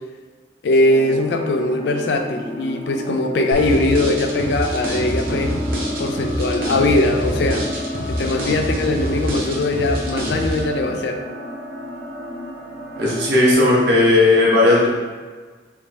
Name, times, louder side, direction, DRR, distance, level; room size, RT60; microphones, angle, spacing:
voice 1, 0.6-5.5 6.0-7.7 8.1-11.2, left 2 dB, 75° left, 5 dB, 0.4 m, -20 dB
sound 1, 0.9-13.5, equal, 15° left, 0.5 m, -31 dB
sound 2, 3.5-10.6, equal, 55° right, 0.7 m, -26 dB
voice 2, 13.0-14.9, left 2 dB, 75° right, -5 dB, 1.0 m, -15 dB
3.5 x 3.0 x 2.7 m, 1.4 s
head